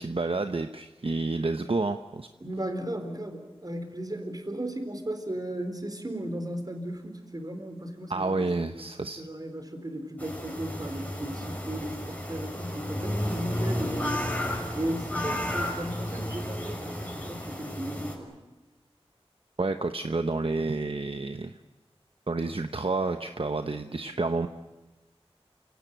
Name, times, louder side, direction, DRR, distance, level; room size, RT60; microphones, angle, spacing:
voice 1, 0.0-2.3 8.1-9.3 19.6-21.6 22.3-24.5, right 3 dB, 60° right, 8 dB, 1.0 m, -29 dB
voice 2, 2.4-8.9 9.2-14.3 14.7-18.3, right 1 dB, 35° right, 6 dB, 4.3 m, -35 dB
sound 1, 10.2-18.2, left 1 dB, 15° left, 6.3 m, -33 dB
29.0 x 17.5 x 9.1 m, 1.1 s
wide cardioid pair, 50°, 11 cm